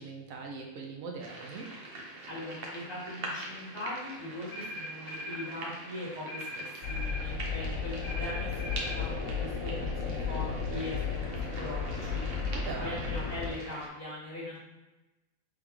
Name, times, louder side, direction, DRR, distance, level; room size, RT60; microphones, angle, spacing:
voice 1, 0.0-1.7 12.5-13.0, right 4 dB, 80° right, 0 dB, 1.1 m, -41 dB
sound 1, 1.2-13.9, right 1 dB, 50° right, 0.8 m, -44 dB
voice 2, 2.3-11.0 11.6-12.3 12.8-14.6, left 1 dB, 20° right, -9 dB, 1.4 m, -40 dB
sound 2, 4.5-5.5 6.3-7.3 8.0-9.0, left 1 dB, 50° left, 0.5 m, -40 dB
sound 3, 6.8-13.5, left 5 dB, 80° left, 1.0 m, -34 dB
3.3 x 3.2 x 3.5 m, 1.0 s
omnidirectional pair, 1.4 m